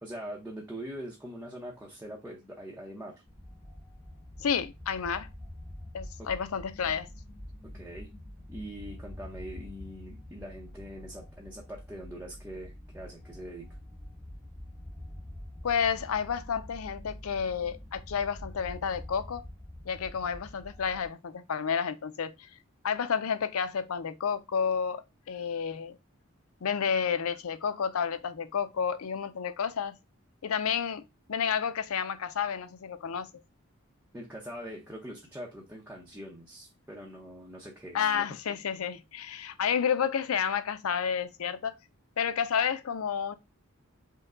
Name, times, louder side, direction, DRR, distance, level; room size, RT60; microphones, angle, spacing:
voice 1, 0.0-3.2 6.2-6.3 7.7-8.1 8.5-13.7 34.1-38.2, equal, 10° right, 0.8 m, -43 dB
sound 1, 3.3-21.1, left 1 dB, 5° left, 1.2 m, -46 dB
voice 2, 4.4-5.3 5.9-7.1 15.6-19.4 19.9-22.5 22.8-25.0 25.3-26.0 26.6-29.9 30.4-31.0 31.3-33.3 37.9-41.7 42.2-43.4, left 7 dB, 90° left, 0.5 m, -30 dB
5.5 x 2.2 x 3.7 m
head